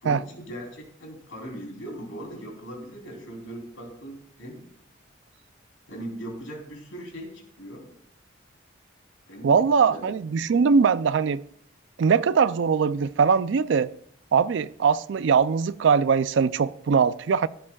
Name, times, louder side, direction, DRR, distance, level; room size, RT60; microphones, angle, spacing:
voice 1, 0.0-4.7 5.9-7.9 9.3-10.1, right 1 dB, 85° left, 3.3 m, -39 dB
voice 2, 9.4-11.4 12.0-13.9 14.3-17.5, right 6 dB, 65° right, 0.4 m, -21 dB
15.0 x 10.0 x 2.3 m
head